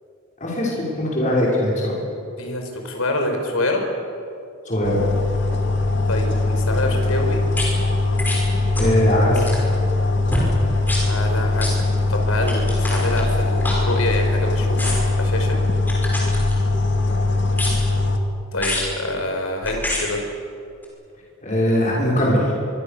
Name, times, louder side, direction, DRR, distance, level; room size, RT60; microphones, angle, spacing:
voice 1, 0.4-1.9 4.7-5.0 8.8-9.4 17.0-17.1 21.4-22.5, equal, 35° left, -5 dB, 6.2 m, -20 dB
voice 2, 2.4-3.8 6.1-7.4 11.0-11.7 12.1-15.6 18.5-20.2, left 1 dB, 75° left, 3 dB, 5.0 m, -26 dB
sound 1, 4.8-18.2, left 2 dB, 55° left, 2.3 m, -21 dB
sound 2, 7.5-7.7 8.2-8.4 8.7-9.0 9.3-9.7 10.3-10.5 10.8-11.0 11.6-11.7 12.4-14.3 14.8-15.2 15.9-16.8 17.5-18.0 18.6-18.9 19.6-20.0 20.8-20.9, left 1 dB, 10° left, 5.8 m, -27 dB
26.0 x 24.5 x 7.0 m, 2.5 s
head